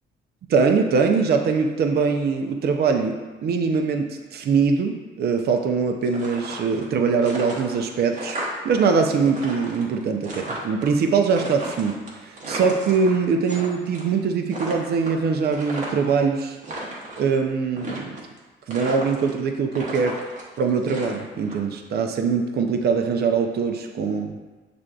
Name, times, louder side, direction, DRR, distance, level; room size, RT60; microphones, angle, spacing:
voice 1, 0.5-8.4 8.6-12.0 12.2-16.6 17.2-18.2 18.7-20.2 20.6-24.4, right 5 dB, 55° right, 4 dB, 0.5 m, -22 dB
sound 1, 6.0-6.9 7.2-8.8 9.1-10.9 11.3-13.7 13.9-14.2 14.5-16.2 16.5-17.3 17.8-18.4 18.7-19.4 19.7-21.5, right 1 dB, 40° right, 0.9 m, -34 dB
6.1 x 2.5 x 2.3 m, 1.3 s
cardioid pair, 90°, 20 cm